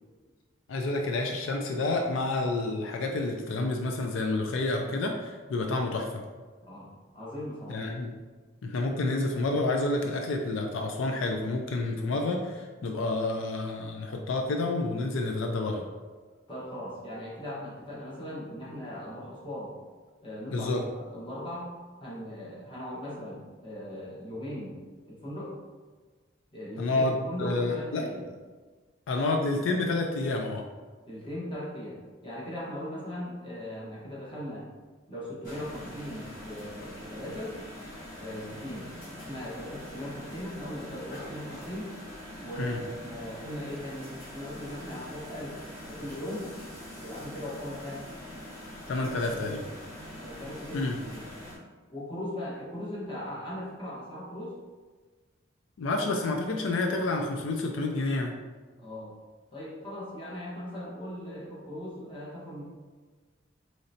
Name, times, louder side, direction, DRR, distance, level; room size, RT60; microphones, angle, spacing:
voice 1, 0.7-6.2 7.7-8.1 8.6-15.8 20.5-20.8 26.8-28.0 29.1-30.6 42.6-42.8 48.9-49.6 50.7-51.0 55.8-58.3, left 2 dB, 85° left, 2 dB, 0.4 m, -29 dB
voice 2, 6.6-7.8 16.5-19.7 20.2-21.7 22.0-24.8 25.1-25.5 26.5-28.3 31.1-34.7 35.1-37.6 38.2-41.9 42.4-45.6 45.8-46.5 47.0-48.0 48.9-49.7 50.2-51.2 51.9-54.6 58.8-59.1 59.5-62.6, left 1 dB, 25° left, -6 dB, 1.1 m, -39 dB
sound 1, 35.4-51.6, left 1 dB, 45° left, 1.4 m, -43 dB
3.8 x 3.2 x 2.7 m, 1.4 s
head